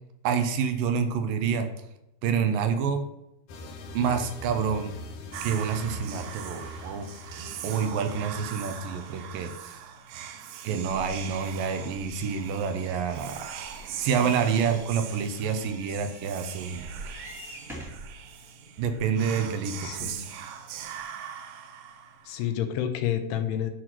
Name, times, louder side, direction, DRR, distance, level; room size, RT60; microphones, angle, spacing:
voice 1, 0.2-1.7 2.2-3.0 3.9-4.9 5.4-7.1 7.6-9.8 10.6-13.5 14.0-16.8 18.8-20.2, right 6 dB, 70° right, 8 dB, 2.3 m, -28 dB
sound 1, 3.5-9.5, equal, 65° left, 2.2 m, -43 dB
Whispering, 5.3-22.5, right 8 dB, 90° right, 3.0 m, -41 dB
sound 2, 12.7-18.1 18.8-18.9 19.1-19.2, equal, ahead, 1.0 m, -48 dB
voice 2, 19.8-20.3 22.3-23.7, left 10 dB, 85° left, 8 dB, 2.9 m, -29 dB
11.5 x 4.4 x 6.0 m, 0.86 s
omnidirectional pair, 4.7 m